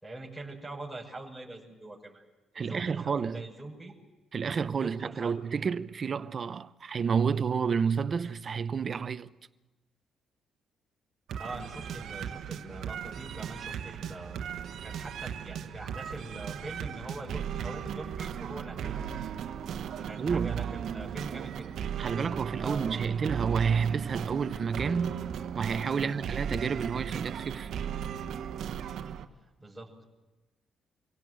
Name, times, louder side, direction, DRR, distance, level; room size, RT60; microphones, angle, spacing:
voice 1, 0.0-2.2 2.5-3.9 4.7-5.3 11.4-14.4 14.8-19.0 20.0-21.7 22.6-23.0 25.9-26.2 29.6-30.0, right 2 dB, 5° left, 6.0 m, -43 dB
voice 2, 2.5-3.4 4.3-9.3 20.2-20.6 22.0-25.2 25.5-27.7, right 6 dB, 45° right, 0.8 m, -30 dB
sound 1, 11.3-29.2, right 8 dB, 70° right, 1.2 m, -36 dB
24.5 x 17.0 x 7.8 m
cardioid pair, 90°, 0 cm